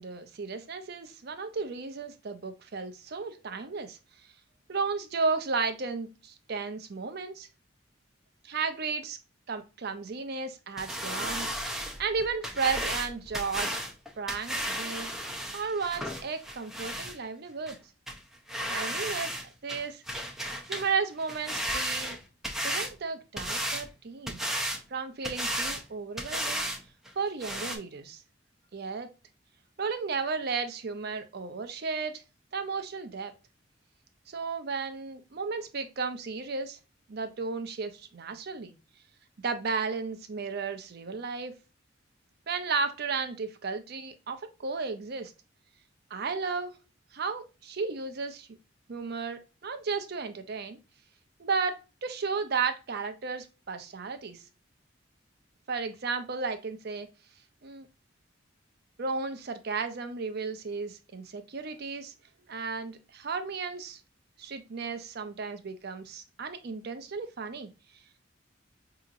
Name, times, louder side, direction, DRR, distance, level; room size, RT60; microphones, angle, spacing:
voice 1, 0.0-4.0 4.7-7.5 8.4-9.2 9.5-13.8 14.2-15.1 15.5-17.8 18.7-19.4 19.6-20.0 20.7-22.2 22.6-24.5 24.9-26.6 27.2-28.2 28.7-29.1 29.8-32.2 32.5-33.3 34.3-36.8 37.1-38.7 39.4-41.5 42.5-45.3 46.1-46.8 47.1-48.5 48.9-50.8 51.4-54.4 55.7-57.1 57.6-57.9 59.0-62.1 62.5-64.0 64.4-67.7, right 4 dB, 55° right, 9 dB, 0.5 m, -34 dB
sound 1, 10.8-17.2 17.7-17.8 18.1-18.2 18.5-19.4 19.7-20.9 21.2-22.9 23.4-23.9 24.3-24.8 25.2-25.8 26.2-26.8 27.0-27.1 27.4-27.8, equal, ahead, 0.5 m, -34 dB
4.9 x 2.8 x 2.4 m, 0.30 s
head